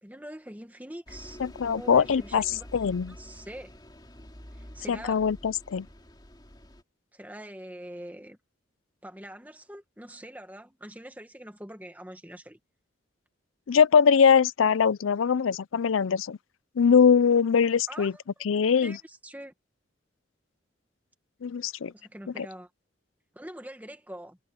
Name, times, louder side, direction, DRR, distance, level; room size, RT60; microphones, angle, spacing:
voice 1, 0.0-2.7 3.2-3.7 4.5-5.2 7.1-8.4 9.0-12.6 17.9-18.4 18.8-19.5 21.9-22.7 23.3-24.4, right 1 dB, 10° right, 1.8 m, -44 dB
Bus, 1.1-6.8, equal, 20° left, 3.0 m, -47 dB
voice 2, 1.4-2.4 2.7-3.1 4.9-5.9 13.7-16.4 16.8-18.1 18.4-19.0 21.4-21.9 22.4-22.5, left 6 dB, 90° left, 0.5 m, -22 dB
head